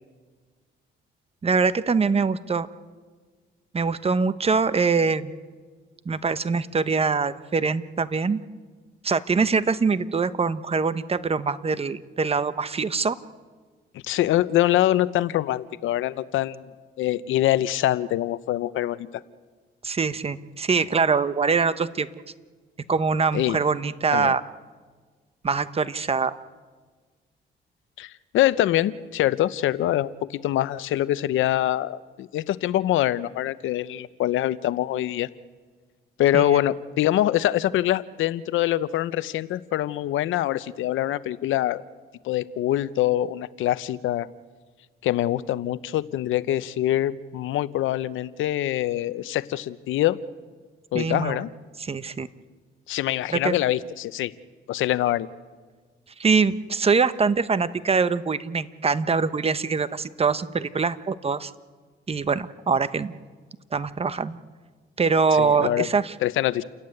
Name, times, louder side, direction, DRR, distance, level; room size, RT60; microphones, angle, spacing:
voice 1, 1.4-2.7 3.7-5.3 6.0-8.4 9.0-13.2 19.8-22.1 22.9-24.4 25.4-26.3 36.3-36.5 50.9-51.4 51.8-52.3 53.3-53.5 56.2-61.5 62.1-63.1 63.7-64.4 65.0-66.1, right 5 dB, 30° right, 14 dB, 1.0 m, -23 dB
voice 2, 14.0-16.7 17.0-19.2 23.3-23.6 24.1-24.3 28.0-35.3 36.2-41.8 42.2-44.3 45.0-50.2 50.9-51.5 52.9-54.3 54.7-55.3 65.4-65.9 66.2-66.6, left 13 dB, 80° left, 16 dB, 0.8 m, -24 dB
29.0 x 14.5 x 9.7 m, 1.5 s
cardioid pair, 90°, 20 cm